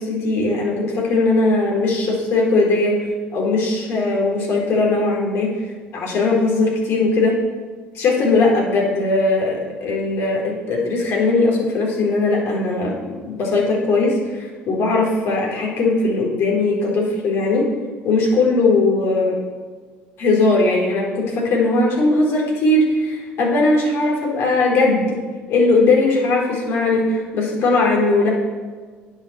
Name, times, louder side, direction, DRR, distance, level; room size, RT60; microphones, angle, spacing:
voice 1, 0.0-2.9 3.3-5.5 5.9-7.3 7.9-12.9 13.2-17.7 18.0-19.4 20.2-25.2 25.5-28.3, left 3 dB, 65° left, -2 dB, 3.9 m, -19 dB
9.1 x 8.8 x 7.3 m, 1.5 s
cardioid pair, 100°, 5 cm